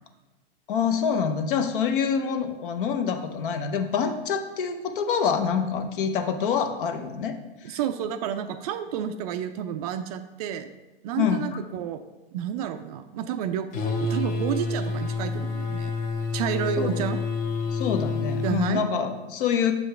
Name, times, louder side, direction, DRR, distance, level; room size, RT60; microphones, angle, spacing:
voice 1, 0.7-7.3 7.6-7.8 11.2-11.5 16.8-17.0 17.7-19.7, left 7 dB, 60° left, 7 dB, 0.8 m, -26 dB
voice 2, 7.6-10.7 11.0-12.0 12.3-13.7 14.0-15.9 16.3-17.2 18.4-18.8, right 9 dB, 40° right, 10 dB, 0.4 m, -30 dB
sound 1, 13.7-18.7, left 3 dB, 40° left, 1.3 m, -28 dB
6.9 x 5.4 x 3.3 m, 1.1 s
hypercardioid pair, 125°, 31 cm